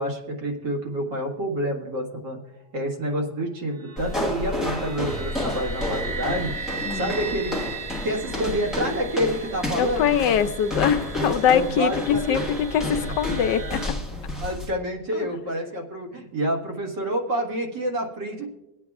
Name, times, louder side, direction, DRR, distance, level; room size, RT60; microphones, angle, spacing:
voice 1, 0.0-2.4 2.7-7.5 8.0-10.1 11.2-12.4 13.2-13.4 14.3-18.5, right 1 dB, 75° right, -1 dB, 2.3 m, -28 dB
sound 1, 3.4-13.9, right 5 dB, 60° right, 1.5 m, -38 dB
sound 2, 4.0-14.7, left 2 dB, ahead, 1.0 m, -31 dB
voice 2, 9.8-13.8 15.1-15.3, left 8 dB, 85° left, 9 dB, 1.3 m, -23 dB
22.5 x 8.7 x 2.4 m, 0.97 s
omnidirectional pair, 1.9 m